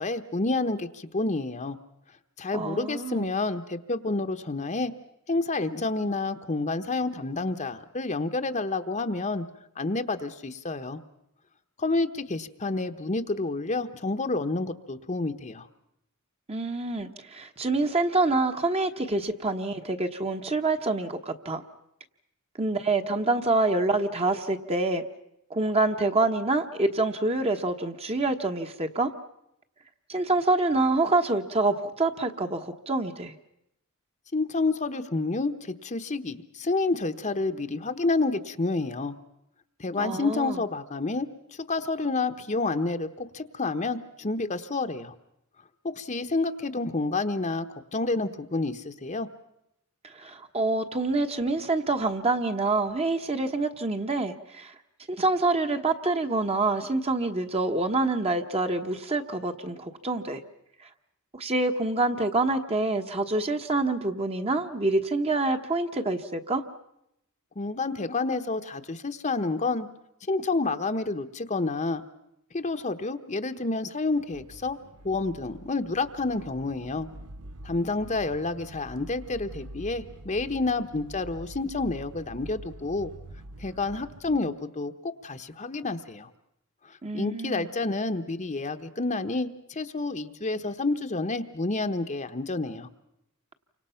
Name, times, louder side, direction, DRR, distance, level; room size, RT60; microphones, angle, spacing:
voice 1, 0.0-1.8 2.4-4.9 5.3-9.4 9.8-11.0 11.8-15.7 34.3-39.2 39.8-45.1 45.8-49.3 67.6-69.9 70.3-72.0 72.5-74.8 75.0-77.1 77.6-83.1 83.6-86.3 86.8-92.9, left 3 dB, 35° left, 8 dB, 1.1 m, -29 dB
voice 2, 2.5-3.3 16.5-21.6 22.6-25.0 25.5-29.1 30.1-33.3 40.0-40.6 50.1-54.7 55.1-60.4 61.3-66.6 87.0-87.7, right 2 dB, 30° right, 6 dB, 1.2 m, -26 dB
sound 1, 74.1-84.4, right 1 dB, 85° right, 1.0 m, -45 dB
29.5 x 25.5 x 5.8 m, 0.80 s
head